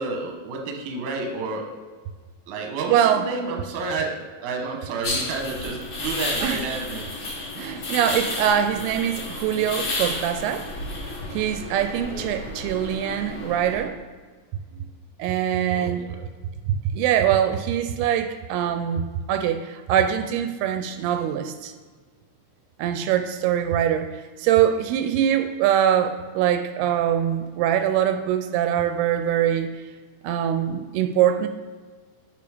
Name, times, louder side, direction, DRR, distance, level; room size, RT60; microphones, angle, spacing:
voice 1, 0.0-1.8 2.5-7.1 11.8-12.3 15.7-16.2, right 3 dB, 65° right, 2 dB, 2.0 m, -30 dB
voice 2, 2.9-3.3 6.4-6.6 7.6-10.7 11.3-14.0 15.2-16.0 16.9-21.7 22.8-29.7 30.2-31.5, right 10 dB, 85° right, 8 dB, 2.5 m, -23 dB
sound 1, 5.0-13.8, left 2 dB, 65° left, 1.2 m, -32 dB
6.9 x 6.3 x 5.0 m, 1.5 s
omnidirectional pair, 4.6 m